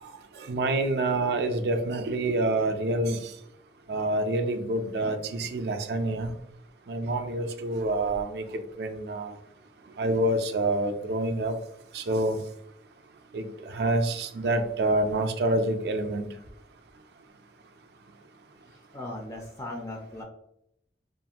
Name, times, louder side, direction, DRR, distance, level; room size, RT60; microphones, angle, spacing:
voice 1, 0.0-3.3 3.9-6.3 6.9-8.4 8.8-9.3 10.0-11.5 11.9-12.4 13.3-16.3, right 2 dB, 65° right, 7 dB, 0.4 m, -27 dB
voice 2, 18.7-20.2, left 1 dB, 20° left, 0 dB, 0.3 m, -38 dB
2.4 x 2.4 x 2.8 m, 0.76 s
head